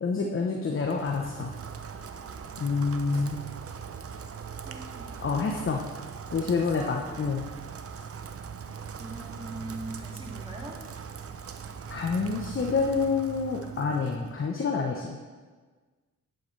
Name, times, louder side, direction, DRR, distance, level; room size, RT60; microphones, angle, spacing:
voice 1, 0.0-1.5 2.6-3.4 5.2-5.9 6.3-7.4 11.9-15.3, left 4 dB, 40° left, 1 dB, 1.0 m, -28 dB
Rain, 0.7-14.5, right 6 dB, 45° right, 0.7 m, -41 dB
voice 2, 4.6-5.4 6.6-7.0 7.8-8.3 8.8-10.8, right 1 dB, 15° right, -2 dB, 2.3 m, -43 dB
10.5 x 8.1 x 3.3 m, 1.4 s
cardioid pair, 70°, 32 cm